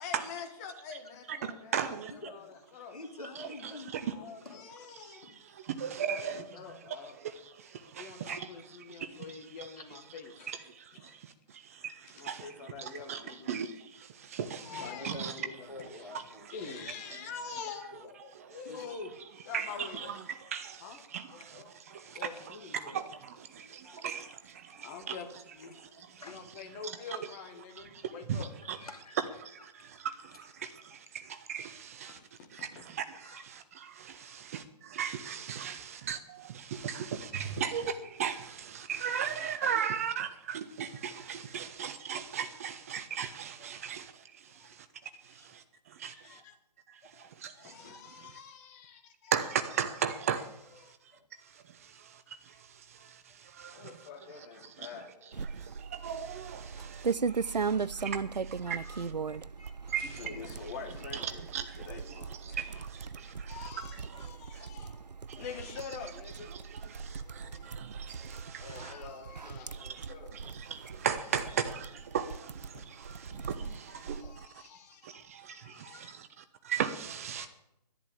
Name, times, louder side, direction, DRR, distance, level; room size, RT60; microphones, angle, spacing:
voice 1, 0.0-3.0 3.4-3.5 4.0-5.3 6.0-7.2 8.0-11.2 12.1-13.5 14.5-15.4 15.8-16.1 16.5-20.5 20.8-21.0 21.3-21.7 22.1-23.1 24.8-25.8 26.2-28.5 32.1-32.9 44.5-44.7 45.3-45.5 46.0-46.5 47.1-47.3 47.5-49.3 50.8-50.9 53.7-55.5 57.8-57.9 60.0-62.6 63.5-65.0 65.3-66.5 67.2-67.7 68.6-70.4 73.6-75.1 75.5-76.0, left 6 dB, 25° left, 1.5 m, -46 dB
voice 2, 1.3-2.1 3.4-4.1 5.0-6.6 6.9-9.2 9.6-9.7 10.5-12.5 12.8-15.3 18.5-18.6 19.5-20.2 20.5-21.6 21.9-25.2 25.7-26.2 28.0-28.8 29.4-32.2 32.5-44.9 45.2-46.4 46.9-48.3 49.3-50.8 51.4-53.9 54.8-54.9 55.5-59.0 59.9-60.2 61.1-62.1 62.4-63.7 64.2-64.7 65.3-65.4 66.5-68.9 69.7-70.1 70.3-74.5 75.0-77.5, right 8 dB, 20° right, 0.5 m, -38 dB
voice 3, 2.9-4.0 4.4-4.6 5.2-5.3 9.8-9.9 10.1-10.2 14.9-17.6 17.9-19.0 21.1-22.5 22.8-23.0 23.5-24.3 24.7-25.1 25.7-26.4 27.8-28.1 28.7-29.3 29.7-30.1 30.6-30.7 33.2-33.5 34.2-34.5 35.6-35.9 37.2-37.4 38.8-38.9 39.5-39.6 43.6-43.8 45.4-45.5 46.3-46.4 47.4-47.6 51.1-51.3 54.2-54.5 56.7-56.9 57.3-57.5 58.1-58.2 58.6-60.4 61.9-62.0 63.1-63.8 64.1-64.3 64.8-65.1 65.7-65.8 68.6-69.1 69.6-69.9 72.9-73.0 75.1-76.1 77.3-77.5, left 2 dB, 65° left, 2.5 m, -51 dB
sound 1, 55.3-74.5, right 5 dB, 85° right, 0.5 m, -39 dB
11.0 x 10.5 x 8.5 m
figure-of-eight pair, 140°, 21 cm